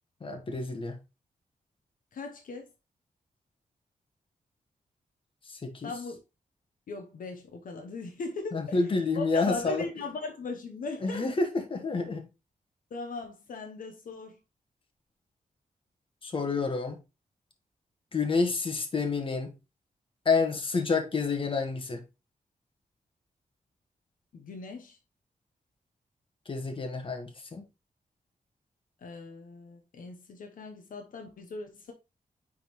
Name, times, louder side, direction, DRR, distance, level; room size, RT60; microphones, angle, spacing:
voice 1, 0.2-1.0 5.5-5.9 8.5-9.8 11.0-12.3 16.2-17.0 18.1-19.5 20.2-22.0 26.5-27.6, left 4 dB, 35° left, 1.3 m, -29 dB
voice 2, 2.1-2.7 5.8-6.2 6.9-8.8 9.2-11.2 12.9-14.4 24.3-25.0 29.0-31.9, left 3 dB, 70° left, 0.9 m, -39 dB
9.3 x 3.8 x 3.1 m
wide cardioid pair, 160°, 14 cm